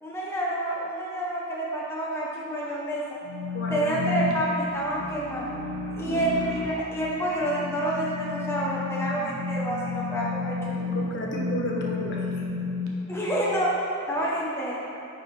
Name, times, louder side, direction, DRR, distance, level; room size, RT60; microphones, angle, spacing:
voice 1, 0.0-3.0 3.7-5.4 6.0-10.8 13.1-13.7 14.1-14.8, right 1 dB, 10° left, -6 dB, 0.7 m, -28 dB
sound 1, 3.2-12.9, left 3 dB, 75° right, 0.9 m, -32 dB
voice 2, 3.5-4.0 6.1-6.3 10.8-12.4, left 1 dB, 50° left, -2 dB, 0.8 m, -33 dB
9.5 x 4.8 x 3.2 m, 2.8 s
head